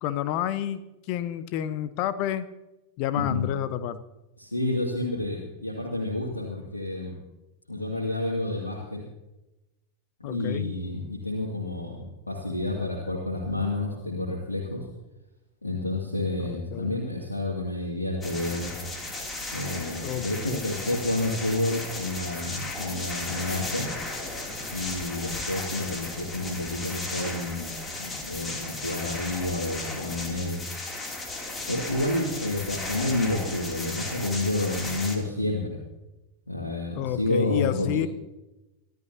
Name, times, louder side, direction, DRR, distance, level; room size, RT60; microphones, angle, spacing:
voice 1, 0.0-0.8 1.1-2.4 3.0-4.0 10.2-10.8 16.4-17.1 20.0-20.8 37.0-38.1, left 11 dB, 45° left, 13 dB, 1.0 m, -30 dB
voice 2, 3.1-3.5 4.4-7.2 7.7-9.0 10.2-14.8 15.6-18.7 19.5-23.9 24.7-27.7 28.0-30.6 31.7-35.8 36.5-38.0, left 2 dB, 80° left, -2 dB, 2.4 m, -29 dB
sound 1, 18.2-35.2, left 2 dB, 15° left, 2.9 m, -35 dB
25.5 x 13.0 x 2.8 m, 0.99 s
figure-of-eight pair, 90°, 0 cm